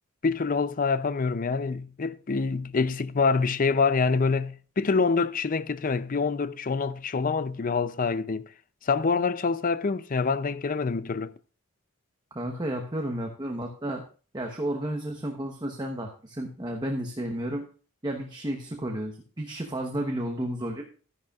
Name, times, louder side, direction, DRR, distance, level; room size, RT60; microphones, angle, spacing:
voice 1, 0.2-8.5 8.8-11.3, left 4 dB, 40° left, 0.5 m, -26 dB
voice 2, 12.3-14.0 14.3-17.6 18.0-20.8, right 1 dB, 20° right, 1.0 m, -32 dB
13.0 x 10.5 x 2.4 m
head